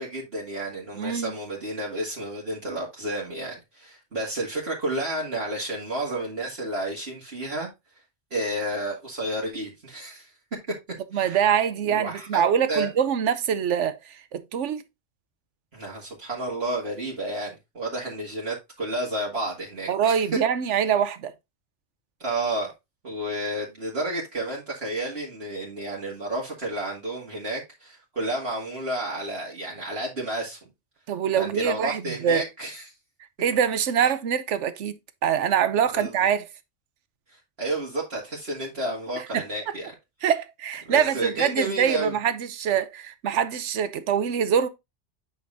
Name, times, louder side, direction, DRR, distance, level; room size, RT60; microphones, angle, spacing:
voice 1, 0.0-7.7 8.3-10.3 11.1-11.4 11.9-12.4 12.7-12.9 15.7-20.3 20.7-20.8 22.2-22.7 23.0-30.6 31.4-32.9 35.9-36.1 37.3-39.9 40.9-42.1, right 1 dB, 60° right, 2.3 m, -31 dB
voice 2, 1.0-1.3 11.1-14.8 19.9-21.3 31.1-32.4 33.4-36.5 39.3-39.4 40.2-44.7, right 8 dB, 80° right, 1.1 m, -24 dB
8.9 x 5.4 x 2.6 m
omnidirectional pair, 1.2 m